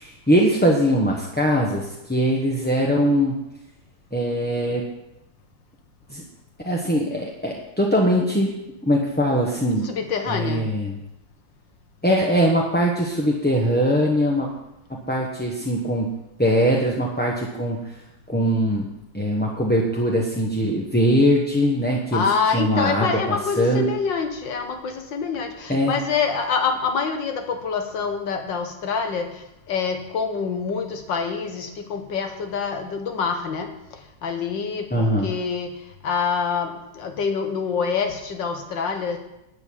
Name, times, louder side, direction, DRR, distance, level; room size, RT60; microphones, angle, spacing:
voice 1, 0.0-3.4 4.1-4.8 6.1-6.2 6.6-8.5 8.8-9.8 10.3-10.9 12.0-14.5 14.9-16.1 16.4-17.8 18.3-18.9 19.1-22.2 22.5-23.9 25.7-25.9 34.9-35.3, equal, 5° left, -2 dB, 0.9 m, -21 dB
voice 2, 9.8-10.6 22.1-29.3 29.7-33.7 34.2-35.7 36.0-39.2, left 5 dB, 85° left, 5 dB, 2.1 m, -26 dB
12.0 x 6.1 x 8.7 m, 0.91 s
omnidirectional pair, 1.9 m